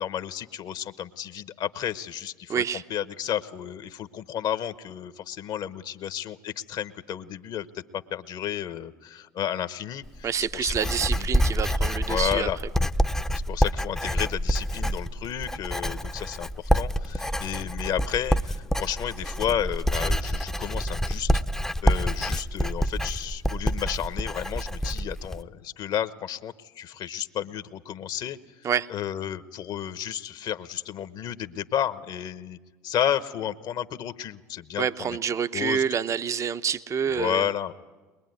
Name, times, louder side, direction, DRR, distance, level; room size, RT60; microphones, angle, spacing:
voice 1, 0.0-2.6 2.9-7.7 7.9-10.3 10.5-10.7 11.2-11.3 12.1-12.6 13.5-21.4 21.8-28.4 28.9-32.6 32.8-35.1 35.5-35.8 37.1-37.7, left 10 dB, 50° left, 13 dB, 1.1 m, -32 dB
voice 2, 2.5-2.8 10.2-12.5 28.6-28.9 34.8-37.5, right 7 dB, 35° right, 12 dB, 0.8 m, -27 dB
Writing, 10.0-25.4, equal, 5° left, 0.7 m, -27 dB
22.0 x 21.5 x 9.4 m, 1.3 s
hypercardioid pair, 75°, 9 cm